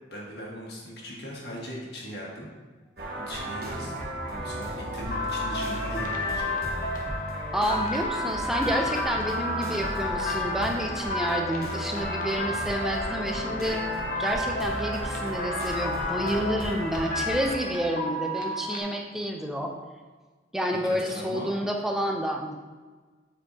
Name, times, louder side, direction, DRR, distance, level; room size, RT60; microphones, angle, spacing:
voice 1, 0.1-2.5 3.2-3.9 4.3-6.5 20.8-21.5, equal, 65° left, -3 dB, 1.5 m, -39 dB
sound 1, 3.0-17.5, right 1 dB, 60° right, 1.3 m, -35 dB
sound 2, 5.1-18.8, left 2 dB, 50° left, 0.8 m, -32 dB
voice 2, 7.5-13.8 14.2-19.7 20.5-22.6, equal, ahead, 1 dB, 0.5 m, -29 dB
7.7 x 4.5 x 2.8 m, 1.3 s
head